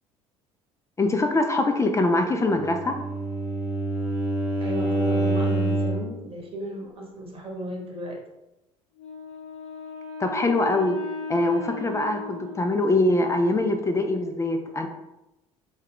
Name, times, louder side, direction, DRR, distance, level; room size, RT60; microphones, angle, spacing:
voice 1, 1.0-3.0 10.2-11.0 11.3-14.9, left 2 dB, 20° left, 5 dB, 0.4 m, -23 dB
Bowed string instrument, 2.5-6.2, right 2 dB, 10° right, 0.7 m, -26 dB
voice 2, 4.6-8.2, equal, 35° right, -1 dB, 1.0 m, -35 dB
Wind instrument woodwind instrument, 9.0-13.2, left 4 dB, 45° left, 0.8 m, -37 dB
2.3 x 2.2 x 3.4 m, 0.94 s
hypercardioid pair, 65°, 16 cm